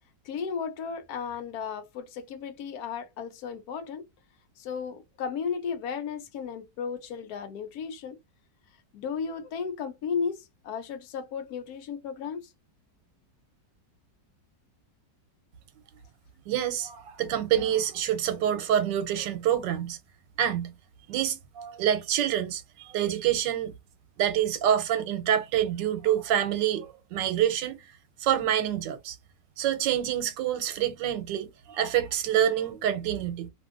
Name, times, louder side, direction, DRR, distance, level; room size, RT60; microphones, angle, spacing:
voice 1, 0.2-4.0 4.6-8.2 8.9-12.5, left 6 dB, 70° left, 1.0 m, -34 dB
voice 2, 16.5-20.0 20.4-20.7 21.1-23.7 24.2-27.8 28.2-29.2 29.6-33.5, right 10 dB, 90° right, 1.3 m, -27 dB
2.8 x 2.6 x 2.4 m
omnidirectional pair, 1.9 m